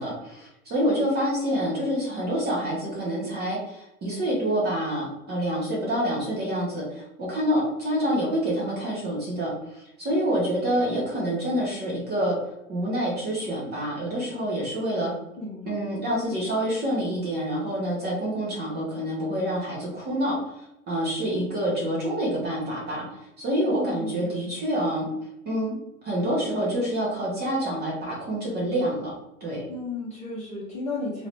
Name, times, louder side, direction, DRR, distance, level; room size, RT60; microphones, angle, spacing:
voice 1, 0.0-12.4 12.7-15.1 15.7-25.1 25.4-25.8 26.0-29.1 29.4-29.6, equal, 25° right, -4 dB, 0.9 m, -27 dB
voice 2, 15.4-15.8 23.7-24.4 29.7-31.3, left 2 dB, 15° left, -8 dB, 0.9 m, -34 dB
2.8 x 2.5 x 3.3 m, 0.88 s
figure-of-eight pair, 90°, 43 cm